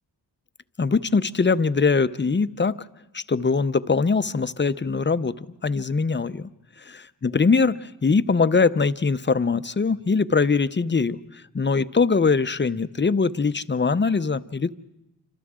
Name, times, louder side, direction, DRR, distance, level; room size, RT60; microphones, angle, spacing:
voice 1, 0.8-2.8 3.1-6.5 7.2-11.2 11.5-14.7, left 4 dB, 25° left, 14 dB, 0.7 m, -22 dB
27.5 x 26.5 x 3.7 m, 0.93 s
cardioid pair, 50°, 42 cm